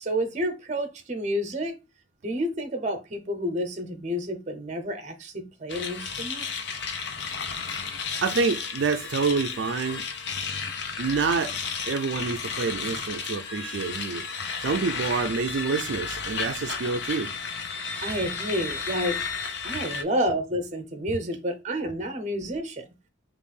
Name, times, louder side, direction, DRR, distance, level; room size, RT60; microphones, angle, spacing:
voice 1, 0.0-1.8 2.2-6.4 18.0-19.2 19.6-22.8, equal, 35° right, 0.8 m, -30 dB
sound 1, 5.7-20.0, left 5 dB, 60° left, 0.7 m, -33 dB
voice 2, 8.2-10.0 11.0-11.6 11.9-17.3 18.0-18.2, right 4 dB, 70° right, 0.4 m, -27 dB
5.2 x 2.5 x 3.3 m
head